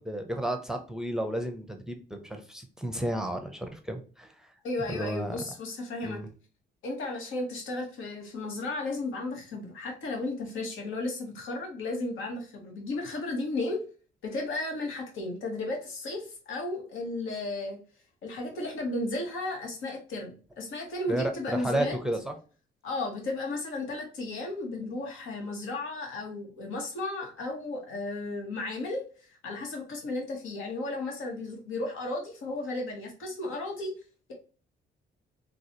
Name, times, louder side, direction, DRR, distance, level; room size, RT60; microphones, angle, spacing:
voice 1, 0.0-4.5 4.9-5.4 6.0-6.3 21.1-22.4, right 1 dB, 5° right, 5 dB, 0.6 m, -32 dB
voice 2, 4.6-6.2 6.8-13.8 14.2-17.8 18.2-21.9 22.8-33.9, left 2 dB, 80° left, 2 dB, 1.2 m, -34 dB
3.9 x 2.4 x 2.9 m, 0.38 s
cardioid pair, 90°, 20 cm